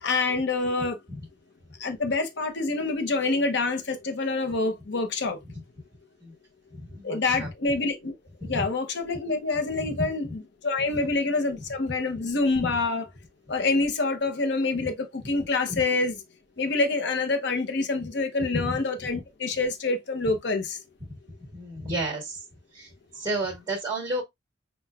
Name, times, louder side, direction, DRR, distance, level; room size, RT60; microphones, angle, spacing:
voice 1, 0.0-1.0 1.8-5.4 7.0-8.1 8.4-13.0 13.5-16.2 16.6-20.8, left 3 dB, 60° left, 0.7 m, -26 dB
voice 2, 6.8-7.5 8.4-8.6 12.6-12.7 15.7-15.8 18.5-18.7 21.5-22.4 22.7-24.2, right 1 dB, 20° right, 1.3 m, -31 dB
5.6 x 2.2 x 2.3 m
head